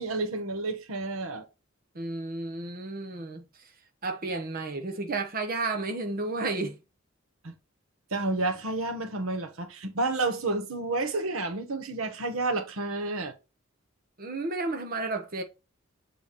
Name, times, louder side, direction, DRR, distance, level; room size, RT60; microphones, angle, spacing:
voice 1, 0.0-1.4 7.4-7.5 8.1-13.3, right 2 dB, 85° right, 1.2 m, -30 dB
voice 2, 1.9-3.4 4.0-6.8 14.2-15.4, right 3 dB, 45° right, 1.2 m, -32 dB
7.5 x 3.4 x 4.1 m
head